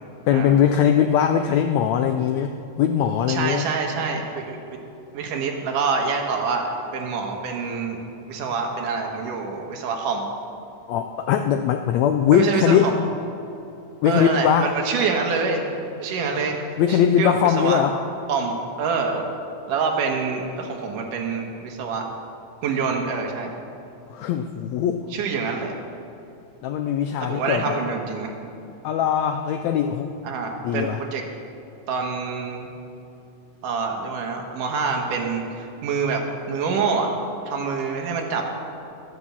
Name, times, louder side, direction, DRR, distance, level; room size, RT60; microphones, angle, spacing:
voice 1, 0.3-3.7 10.9-12.9 14.0-14.7 16.8-17.9 24.1-25.1 26.6-27.8 28.8-30.1 30.6-31.0, left 9 dB, 85° left, 7 dB, 1.5 m, -21 dB
voice 2, 3.3-4.6 5.1-8.0 8.3-10.3 12.3-12.9 14.1-15.6 16.0-16.6 16.9-17.8 18.3-19.2 19.7-22.1 22.6-23.5 25.1-25.8 27.2-28.3 30.2-31.2 31.9-32.7 33.6-37.1 37.5-38.5, right 5 dB, 80° right, 2 dB, 2.9 m, -26 dB
12.5 x 9.8 x 7.4 m, 2.8 s
omnidirectional pair, 3.7 m